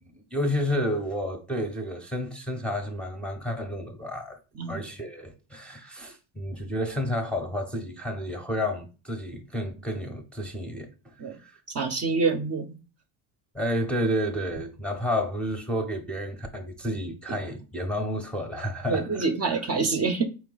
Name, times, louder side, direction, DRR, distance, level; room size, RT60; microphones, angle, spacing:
voice 1, 0.0-4.4 4.7-11.1 11.4-11.6 13.5-19.6, equal, ahead, 0.7 m, -31 dB
voice 2, 11.7-12.7 17.3-17.4 18.9-20.2, right 4 dB, 30° right, 0.7 m, -26 dB
4.3 x 2.9 x 3.9 m
supercardioid pair, 100°, 47 cm